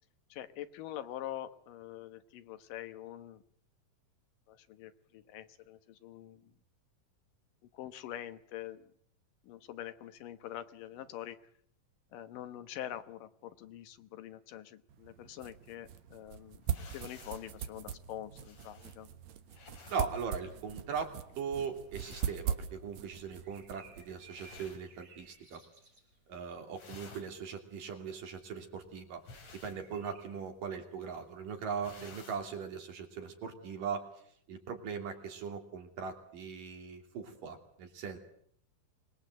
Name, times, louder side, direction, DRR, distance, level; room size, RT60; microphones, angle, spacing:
voice 1, 0.3-3.4 4.5-6.5 7.7-8.9 9.4-11.4 12.1-19.1, left 12 dB, 90° left, 10 dB, 2.8 m, -45 dB
sound 1, 14.9-24.8, right 9 dB, 65° right, 2.3 m, -41 dB
Cloth single swishes, 16.6-25.6 25.9-26.3 26.6-32.5, left 4 dB, 55° left, 4.4 m, -56 dB
voice 2, 19.9-25.6 26.3-29.2 29.5-34.1 34.5-38.2, right 6 dB, 90° right, 3 dB, 4.6 m, -40 dB
sound 2, 23.3-26.4 29.4-30.4, right 4 dB, 45° right, 8.2 m, -59 dB
25.0 x 20.5 x 7.9 m, 0.66 s
omnidirectional pair, 3.7 m